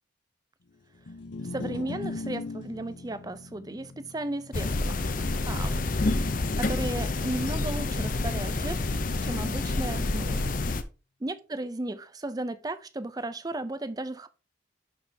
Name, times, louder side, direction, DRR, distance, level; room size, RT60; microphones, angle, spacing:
sound 1, 0.9-7.3, left 3 dB, 80° left, 0.8 m, -41 dB
voice 1, 1.5-5.0 5.4-5.9 6.6-8.8 9.2-10.5 11.2-14.3, right 2 dB, 20° right, 0.5 m, -35 dB
sound 2, 4.5-10.8, left 2 dB, 45° left, 0.6 m, -28 dB
11.0 x 4.3 x 3.4 m
head